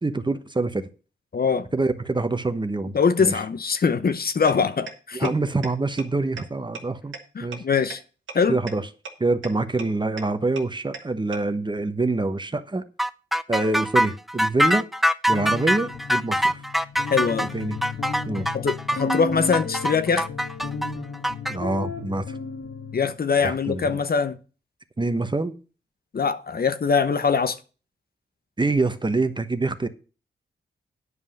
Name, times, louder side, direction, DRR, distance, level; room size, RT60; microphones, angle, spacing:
voice 1, 0.0-0.9 1.7-3.4 5.1-7.1 7.4-7.6 8.5-8.9 9.2-12.8 13.5-14.9 15.3-16.6 17.4-17.8 18.3-18.5 21.5-22.4 23.4-23.9 25.0-25.5 28.6-29.9, right 3 dB, 25° right, 1.0 m, -25 dB
voice 2, 1.3-1.7 2.9-5.3 7.3-8.0 8.3-8.6 17.1-17.5 18.5-20.3 22.9-24.4 26.1-27.6, left 5 dB, 50° left, 0.8 m, -22 dB
sound 1, 4.5-4.6 4.9-5.0 5.2-5.3 5.6-5.7 6.0-6.1 6.4-6.5 6.7-6.8 7.1-7.2 7.5-7.6 7.9-8.0 8.3-8.4 8.7-8.8 9.0-9.1 9.4-9.5 9.8-9.9 10.2-10.3 10.6-10.7 10.9-11.0 11.3-11.4, right 5 dB, 85° right, 1.5 m, -34 dB
sound 2, 13.0-21.5, equal, ahead, 0.5 m, -23 dB
sound 3, 15.3-23.1, left 4 dB, 75° left, 1.9 m, -34 dB
9.5 x 5.4 x 6.5 m
cardioid pair, 55°, 19 cm